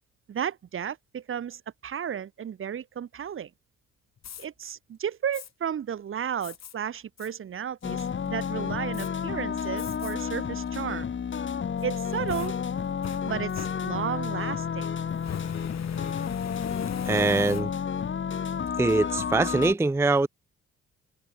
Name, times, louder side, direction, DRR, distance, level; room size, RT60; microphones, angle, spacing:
voice 1, 0.3-3.5 4.4-11.1 11.8-12.6 13.2-14.9, right 8 dB, 45° right, 0.9 m, -33 dB
Fire, 4.2-4.5 5.3-5.5 6.4-6.7 7.2-7.3 7.8-8.3 8.9-9.1 9.8-10.1 10.6-10.7 11.8-14.3 15.1-18.0, left 9 dB, 60° left, 3.2 m, -41 dB
sound 1, 7.8-19.7, left 7 dB, 40° left, 1.7 m, -31 dB
voice 2, 17.0-17.7 18.8-20.3, right 3 dB, 10° right, 0.5 m, -23 dB
cardioid pair, 90°, 30 cm